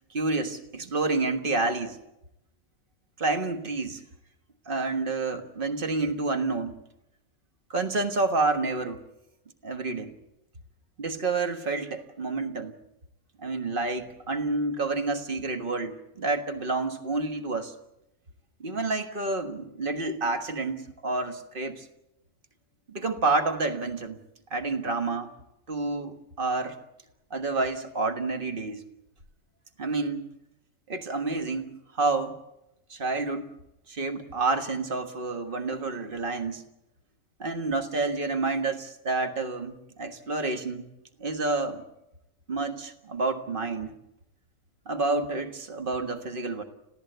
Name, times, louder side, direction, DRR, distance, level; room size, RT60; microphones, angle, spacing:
voice 1, 0.1-2.0 3.2-4.0 4.7-6.8 7.7-9.0 9.6-10.1 11.0-12.7 13.4-17.7 18.6-21.9 22.9-24.2 24.5-25.3 25.7-26.8 27.3-28.8 29.8-30.3 30.9-32.4 32.9-33.5 33.9-36.6 37.4-40.9 41.2-41.8 42.5-43.9 44.8-46.6, right 3 dB, 40° right, 8 dB, 1.7 m, -29 dB
26.5 x 16.0 x 8.0 m, 0.89 s
omnidirectional pair, 1.5 m